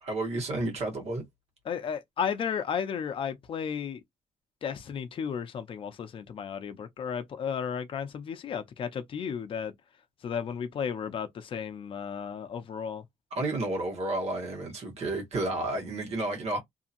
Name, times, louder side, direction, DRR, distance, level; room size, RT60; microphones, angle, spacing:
voice 1, 0.0-1.2 13.3-16.6, right 2 dB, 55° right, 1.3 m, -31 dB
voice 2, 1.7-4.0 4.6-9.7 10.2-13.0, left 7 dB, 45° left, 0.6 m, -34 dB
2.7 x 2.7 x 2.5 m
cardioid pair, 170°, 13 cm